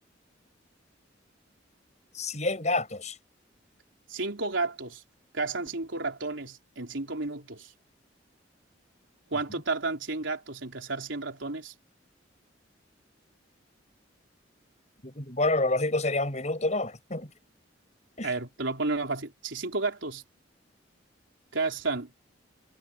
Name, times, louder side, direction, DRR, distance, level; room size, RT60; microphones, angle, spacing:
voice 1, 2.2-3.2 15.0-17.3 18.2-18.3, left 2 dB, 35° left, 6.9 m, -28 dB
voice 2, 4.1-5.0 5.3-7.7 9.3-11.7 18.2-20.2 21.5-22.1, right 3 dB, 85° right, 3.8 m, -32 dB
head